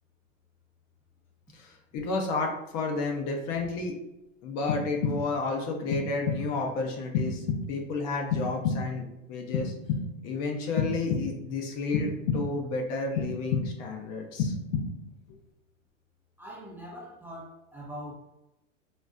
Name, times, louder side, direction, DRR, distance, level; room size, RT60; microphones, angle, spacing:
voice 1, 1.5-3.9 4.4-7.4 7.7-9.7 10.2-14.5, left 3 dB, 45° left, 1 dB, 0.8 m, -31 dB
sound 1, 4.7-5.5 5.9-6.6 7.1-7.9 8.3-9.1 9.5-10.3 10.8-11.6 11.9-12.7 13.2-14.0 14.4-15.2, left 5 dB, 90° left, 0.7 m, -31 dB
voice 2, 16.4-18.1, equal, 5° right, -5 dB, 0.6 m, -42 dB
4.0 x 2.1 x 2.4 m, 0.91 s
hypercardioid pair, 105°, 38 cm